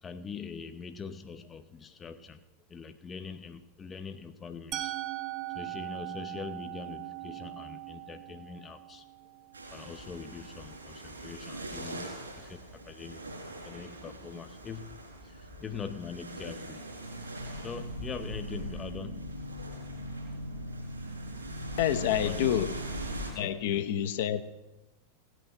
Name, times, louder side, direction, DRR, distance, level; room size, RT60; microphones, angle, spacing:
voice 1, 0.0-5.0 5.5-9.0 9.7-13.3 13.6-16.9 17.6-19.4 22.2-22.7 23.3-23.9, left 5 dB, 20° left, 9 dB, 0.6 m, -43 dB
Musical instrument, 4.7-10.6, right 16 dB, 40° right, 1.0 m, -40 dB
sound 1, 9.5-23.3, right 1 dB, 75° right, 4.4 m, -40 dB
voice 2, 21.8-22.7 23.3-24.4, left 11 dB, 55° left, 9 dB, 0.8 m, -28 dB
17.0 x 9.0 x 5.9 m, 1.0 s
figure-of-eight pair, 90°, 0 cm